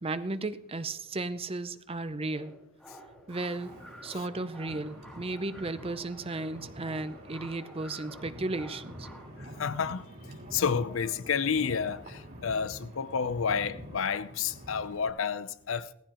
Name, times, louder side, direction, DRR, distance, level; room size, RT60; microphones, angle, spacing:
voice 1, 0.0-2.5 3.3-3.7 4.0-9.1, right 2 dB, 25° right, 0.6 m, -35 dB
sound 1, 2.3-9.3, equal, ahead, 1.8 m, -51 dB
Wind, 3.3-15.1, right 1 dB, 45° right, 3.1 m, -47 dB
voice 2, 9.6-10.0 10.5-15.9, left 6 dB, 70° left, 0.6 m, -30 dB
18.0 x 15.0 x 3.0 m
head